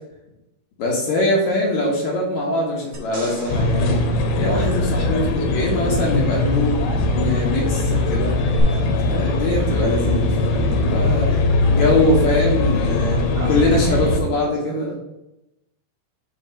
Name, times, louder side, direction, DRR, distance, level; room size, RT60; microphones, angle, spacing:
voice 1, 0.8-4.0 4.4-8.4 9.0-11.4 11.7-13.2 13.5-15.0, left 1 dB, 65° left, -2 dB, 2.2 m, -22 dB
sound 1, 2.9-5.4 8.6-8.7, right 3 dB, 60° right, 1.0 m, -38 dB
sound 2, 3.5-14.2, left 2 dB, 85° left, 2.8 m, -20 dB
voice 2, 13.3-15.0, right 5 dB, 85° right, 1 dB, 1.6 m, -34 dB
5.7 x 3.9 x 5.4 m, 0.90 s
omnidirectional pair, 4.2 m